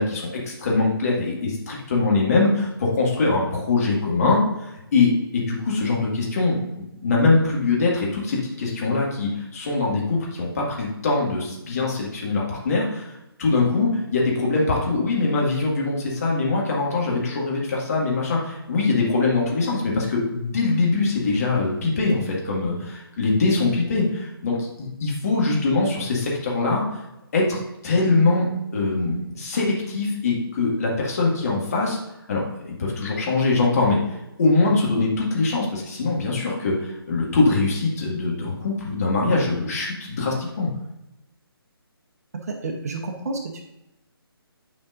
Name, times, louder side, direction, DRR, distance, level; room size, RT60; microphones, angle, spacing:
voice 1, 0.0-26.8 27.3-32.0 32.3-34.0 34.4-40.7, left 3 dB, 40° left, -3 dB, 2.0 m, -23 dB
voice 2, 42.6-43.6, right 3 dB, 40° right, 3 dB, 1.0 m, -30 dB
9.7 x 5.0 x 2.6 m, 0.92 s
figure-of-eight pair, 145°, 13 cm